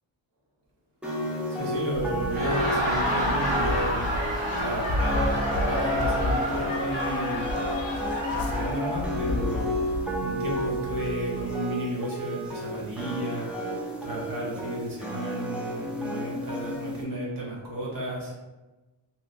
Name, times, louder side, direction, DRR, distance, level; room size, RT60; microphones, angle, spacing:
sound 1, 1.0-17.0, equal, 5° right, 0.3 m, -32 dB
voice 1, 1.5-4.0 4.6-7.5 8.3-18.3, right 1 dB, 45° right, -5 dB, 1.0 m, -33 dB
sound 2, 1.9-11.5, left 1 dB, 60° left, 0.5 m, -33 dB
Laughter, 2.2-9.0, left 1 dB, 70° right, 1.5 m, -29 dB
3.1 x 2.7 x 2.6 m, 1.2 s
wide cardioid pair, 155°, 47 cm